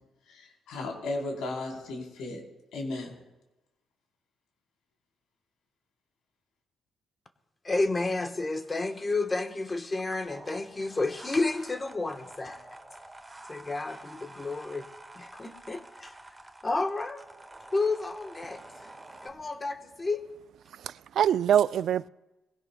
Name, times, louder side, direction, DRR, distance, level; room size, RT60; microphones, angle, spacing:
voice 1, 0.3-2.4 2.7-3.1, left 2 dB, 85° left, 3.6 m, -35 dB
voice 2, 7.6-12.6 13.5-14.8 15.2-16.1 16.6-17.2 17.7-18.6 19.2-20.2, left 3 dB, 25° left, 1.1 m, -31 dB
sound 1, 10.3-19.3, right 2 dB, 15° right, 1.5 m, -49 dB
voice 3, 20.7-22.1, right 9 dB, 70° right, 0.3 m, -24 dB
21.5 x 16.5 x 2.2 m
cardioid pair, 90°, 0 cm